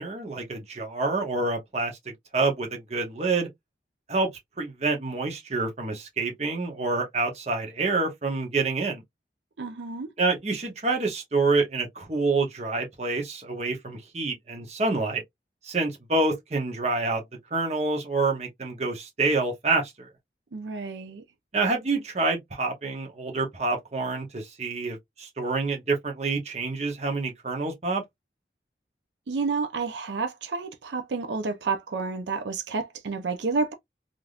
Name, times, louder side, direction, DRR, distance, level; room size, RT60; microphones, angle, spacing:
voice 1, 0.0-2.0 2.3-3.5 4.1-4.3 4.6-9.0 10.2-15.2 15.6-17.2 17.5-20.1 21.5-28.0, right 3 dB, 40° right, 0.8 m, -27 dB
voice 2, 9.6-10.1 20.5-21.2 29.3-33.7, right 4 dB, 85° right, 0.5 m, -30 dB
3.3 x 2.5 x 2.3 m
head